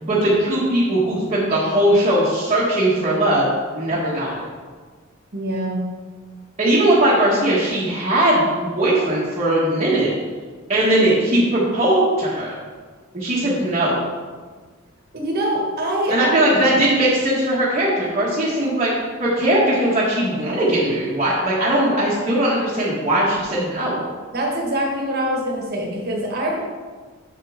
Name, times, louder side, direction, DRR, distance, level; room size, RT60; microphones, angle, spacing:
voice 1, 0.0-4.3 6.6-10.1 10.7-12.5 13.1-14.0 16.1-18.9 19.2-24.0, right 1 dB, 30° right, -9 dB, 1.4 m, -19 dB
voice 2, 5.3-5.8 15.1-16.5 24.3-26.6, right 1 dB, 50° right, -1 dB, 1.5 m, -24 dB
6.5 x 6.5 x 3.6 m, 1.5 s
head